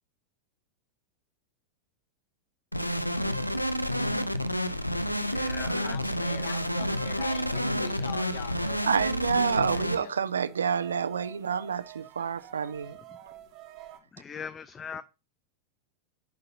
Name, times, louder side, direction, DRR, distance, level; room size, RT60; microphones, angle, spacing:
sound 1, 2.7-10.0, equal, 90° left, 0.5 m, -29 dB
voice 1, 4.7-6.1 13.1-13.2 14.1-15.0, left 6 dB, 20° left, 0.3 m, -42 dB
sound 2, 5.5-9.3 9.7-14.0, right 12 dB, 35° right, 1.1 m, -49 dB
voice 2, 5.8-8.9 9.5-10.2, left 10 dB, 50° left, 0.9 m, -42 dB
voice 3, 8.8-13.0, right 6 dB, 70° right, 0.4 m, -28 dB
11.0 x 3.9 x 2.7 m
figure-of-eight pair, 90°, 0 cm